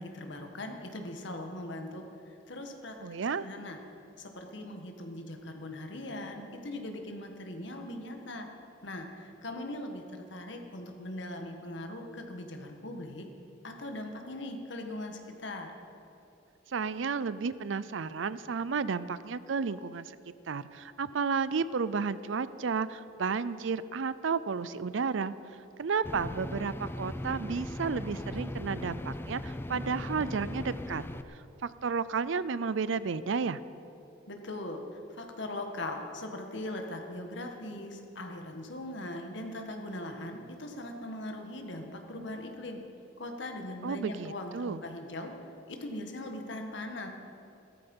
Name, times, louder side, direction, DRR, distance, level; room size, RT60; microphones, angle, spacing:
voice 1, 0.0-3.0 3.3-3.8 4.2-8.5 8.8-13.3 13.6-15.7 34.3-42.8 43.2-45.3 45.7-47.1, left 1 dB, 65° left, 3 dB, 1.7 m, -40 dB
voice 2, 3.0-3.4 16.7-20.1 20.5-25.3 25.8-31.0 31.6-33.6 43.8-44.8, right 5 dB, 70° right, 16 dB, 0.5 m, -32 dB
sound 1, 26.0-31.2, left 1 dB, 10° left, 0.4 m, -38 dB
16.5 x 13.5 x 5.5 m, 2.8 s
head